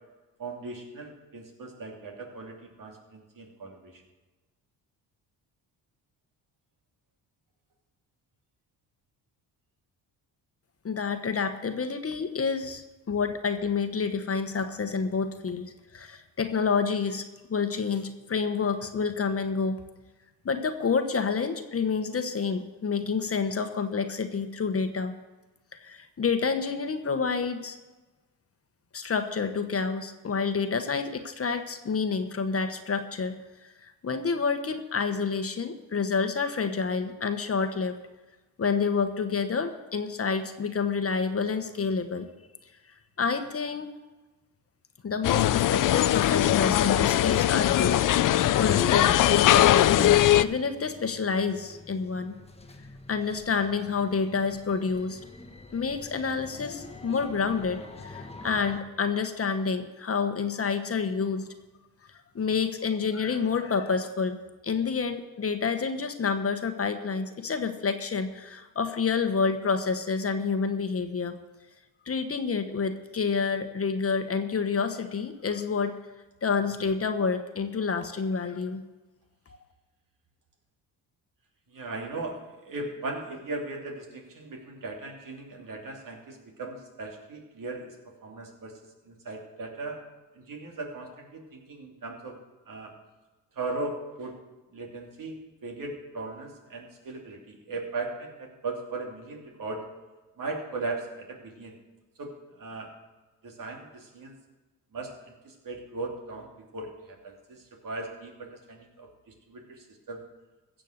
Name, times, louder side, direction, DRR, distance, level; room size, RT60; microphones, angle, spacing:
voice 1, 0.4-4.0 81.7-88.8 89.0-90.0 90.3-92.4 92.6-92.9 93.5-94.4 94.7-99.9 100.4-101.7 102.2-102.9 103.4-104.4 104.9-110.2, right 3 dB, 60° right, 1 dB, 3.0 m, -38 dB
voice 2, 10.8-19.8 20.4-25.1 25.8-27.8 28.9-33.4 33.6-38.0 38.6-42.3 43.2-43.9 45.0-52.4 53.1-55.2 55.7-61.5 62.3-64.4 64.6-71.4 72.0-75.9 76.4-78.8, left 5 dB, 40° left, 8 dB, 1.3 m, -28 dB
sound 1, 45.2-50.4, left 13 dB, 60° left, 0.5 m, -21 dB
sound 2, 46.4-58.8, left 3 dB, 15° left, 1.4 m, -42 dB
15.5 x 7.6 x 6.6 m, 1.2 s
cardioid pair, 75°, 37 cm